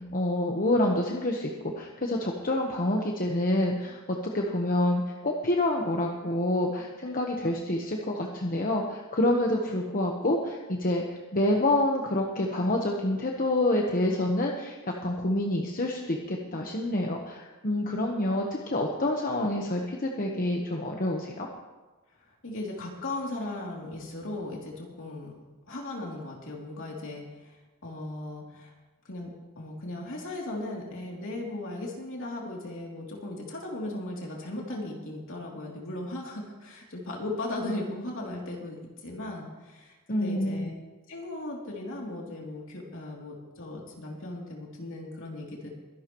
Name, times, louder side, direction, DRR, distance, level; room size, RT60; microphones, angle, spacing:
voice 1, 0.1-14.8 15.0-21.5 40.1-40.7, left 1 dB, 40° left, 0 dB, 1.1 m, -27 dB
voice 2, 22.4-25.4 25.7-27.5 27.8-28.7 29.0-40.7 41.1-45.7, left 2 dB, 60° left, -2 dB, 2.9 m, -37 dB
23.0 x 11.5 x 3.1 m, 1.2 s
head